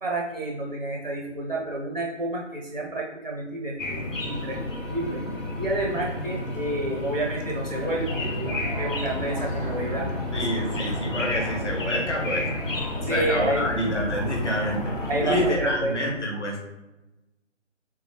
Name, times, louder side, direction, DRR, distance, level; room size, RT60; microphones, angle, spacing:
voice 1, 0.0-4.6 4.9-5.2 5.6-10.1 10.6-10.7 13.0-13.7 15.1-16.0, right 2 dB, 35° right, -2 dB, 0.4 m, -29 dB
sound 1, 3.8-15.5, left 2 dB, 90° left, 0.8 m, -32 dB
sound 2, 4.1-11.6, right 1 dB, 10° left, 0.9 m, -46 dB
sound 3, 7.8-16.0, right 1 dB, 35° left, 0.4 m, -35 dB
voice 2, 10.3-12.5 13.1-14.9 15.2-16.6, left 1 dB, 65° left, -1 dB, 1.3 m, -27 dB
3.5 x 2.8 x 3.1 m, 1.0 s
figure-of-eight pair, 160°, 37 cm